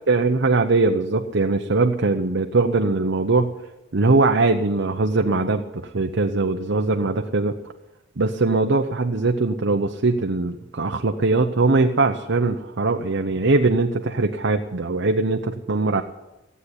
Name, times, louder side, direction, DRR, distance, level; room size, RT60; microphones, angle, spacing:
voice 1, 0.1-3.5 3.9-7.6 8.2-16.0, right 3 dB, 60° right, 4 dB, 0.8 m, -21 dB
15.0 x 8.4 x 9.8 m, 1.0 s
head